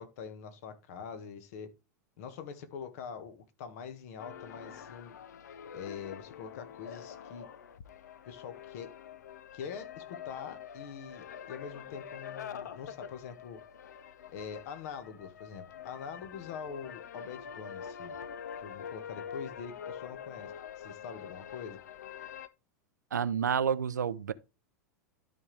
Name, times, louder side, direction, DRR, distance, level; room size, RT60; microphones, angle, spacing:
voice 1, 0.0-1.7 2.2-5.1 5.7-7.5 8.2-8.9 9.5-13.6 14.3-18.2 18.6-21.8, left 7 dB, 60° left, 1.5 m, -44 dB
sound 1, 4.2-22.5, left 8 dB, 75° left, 0.7 m, -46 dB
voice 2, 23.1-24.3, right 7 dB, 85° right, 0.5 m, -29 dB
12.5 x 4.5 x 3.3 m
hypercardioid pair, 95°, 9 cm